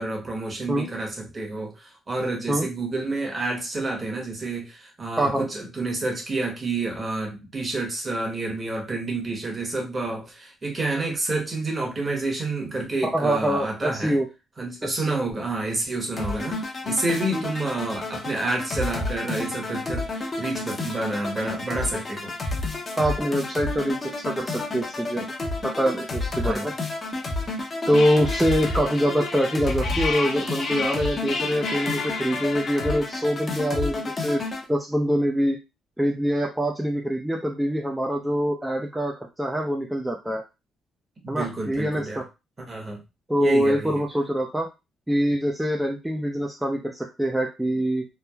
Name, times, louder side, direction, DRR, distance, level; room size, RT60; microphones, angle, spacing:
voice 1, 0.0-14.2 14.6-22.3 26.4-26.7 41.2-42.2 42.6-43.0 43.4-44.0, right 2 dB, 30° right, 1 dB, 1.0 m, -29 dB
voice 2, 13.0-14.3 14.8-15.2 17.3-17.4 23.0-25.3 25.6-26.7 27.9-34.4 34.7-35.6 36.0-40.4 41.3-42.2 43.3-44.7 45.1-48.1, equal, 5° right, 0 dB, 0.4 m, -24 dB
sound 1, 16.2-34.6, left 2 dB, 35° left, 0.7 m, -31 dB
sound 2, 27.9-33.1, left 4 dB, 70° left, 0.6 m, -32 dB
3.0 x 2.1 x 2.3 m, 0.25 s
cardioid pair, 90°, 0 cm